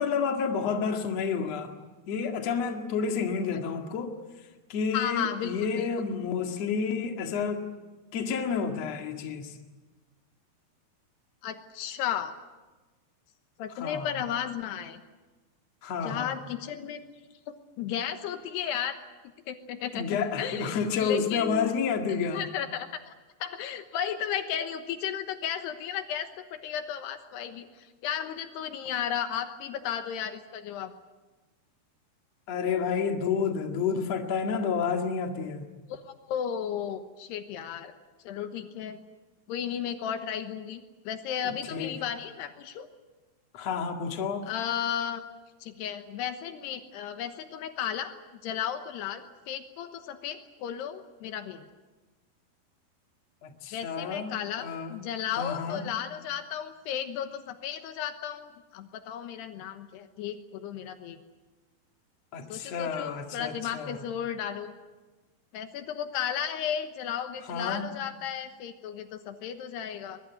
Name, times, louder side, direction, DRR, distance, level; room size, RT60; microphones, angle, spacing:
voice 1, 0.0-1.7 2.1-4.2 4.7-7.7 8.1-9.6 13.8-14.2 15.8-16.4 19.9-22.4 32.5-35.7 41.7-41.9 43.5-44.5 53.4-55.0 55.4-55.8 62.3-64.0 67.5-67.9, left 6 dB, 45° left, 4 dB, 2.7 m, -30 dB
voice 2, 4.9-5.8 11.4-12.3 13.6-15.0 16.0-17.0 17.5-19.0 19.5-20.1 20.4-21.7 22.3-23.1 23.4-30.9 35.9-36.0 36.3-37.9 38.2-39.0 39.5-42.9 44.5-45.2 45.6-48.1 48.4-51.6 53.7-61.2 62.5-64.7 65.5-70.2, left 9 dB, 80° left, 8 dB, 3.2 m, -34 dB
22.5 x 22.0 x 9.3 m, 1.2 s
omnidirectional pair, 4.8 m